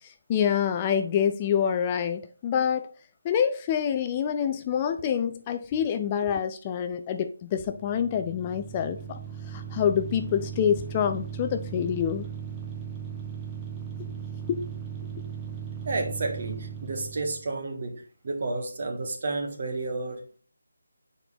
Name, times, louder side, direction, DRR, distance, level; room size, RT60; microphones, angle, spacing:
voice 1, 0.0-2.9 3.2-9.2 9.5-12.3 14.0-14.1 14.5-14.6, left 8 dB, 20° left, 0.4 m, -27 dB
sound 1, 7.6-17.5, right 8 dB, 15° right, 0.8 m, -38 dB
voice 2, 15.8-20.4, right 3 dB, 45° right, 1.4 m, -31 dB
6.8 x 4.5 x 3.4 m
figure-of-eight pair, 165°, 0 cm